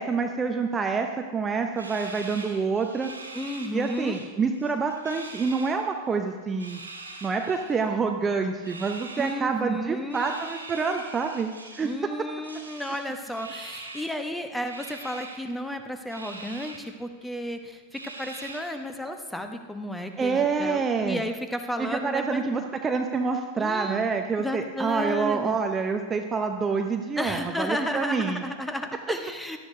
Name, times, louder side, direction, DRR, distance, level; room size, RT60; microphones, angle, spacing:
voice 1, 0.0-3.1 3.7-6.8 7.2-11.9 20.2-21.2 21.8-28.4, right 5 dB, 20° right, 4 dB, 0.7 m, -27 dB
sound 1, 1.8-4.3 4.5-5.7 6.5-7.8 8.6-9.4 10.1-12.0 12.4-14.1 14.7-15.4 16.1-16.8 17.2-17.3 17.9-18.8, right 3 dB, 80° right, 2.1 m, -42 dB
voice 2, 3.3-4.2 9.2-10.2 11.8-22.4 23.6-24.0 24.4-25.6 27.2-29.6, left 1 dB, 5° left, 6 dB, 1.0 m, -33 dB
17.5 x 12.5 x 2.7 m, 1.4 s
figure-of-eight pair, 90°, 0 cm